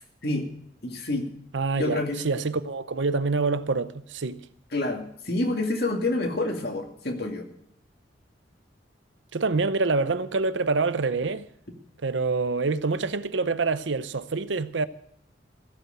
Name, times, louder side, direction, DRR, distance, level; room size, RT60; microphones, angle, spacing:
voice 1, 0.8-1.3 1.8-2.2 4.7-7.5, left 2 dB, 55° left, 2.3 m, -28 dB
voice 2, 1.5-4.4 9.3-11.4 12.0-14.9, right 3 dB, 85° right, 0.7 m, -26 dB
15.5 x 8.0 x 7.7 m
head